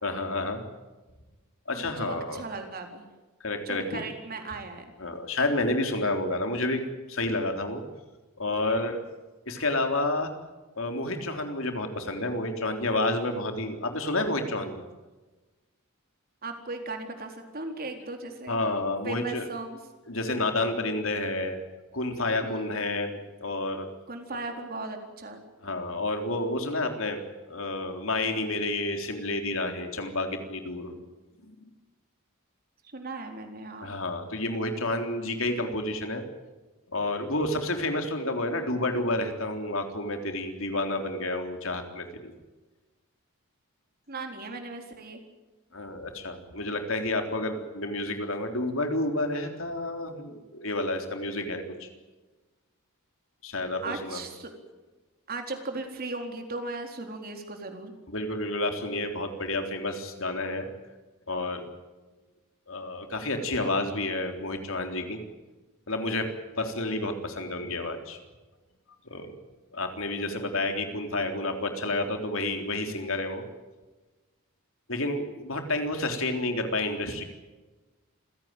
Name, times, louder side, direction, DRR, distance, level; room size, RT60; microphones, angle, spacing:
voice 1, 0.0-0.6 1.7-2.4 3.4-4.0 5.0-6.8 7.1-7.8 8.4-9.0 9.5-10.3 10.8-14.8 18.5-19.5 20.1-21.6 21.9-23.9 25.6-30.9 31.5-31.6 33.8-36.2 36.9-42.4 45.7-51.9 53.4-54.2 58.1-60.7 61.3-61.6 62.7-65.2 65.9-66.3 66.6-68.2 69.1-69.3 69.7-73.5 74.9-77.2, left 2 dB, 65° left, 5 dB, 3.7 m, -30 dB
voice 2, 1.7-3.0 3.7-4.9 16.4-18.6 19.0-19.8 22.4-22.8 24.1-25.4 32.9-33.9 44.1-45.2 53.8-54.5 55.3-57.9, right 3 dB, 45° right, 4 dB, 4.0 m, -37 dB
27.5 x 17.0 x 9.2 m, 1.2 s
head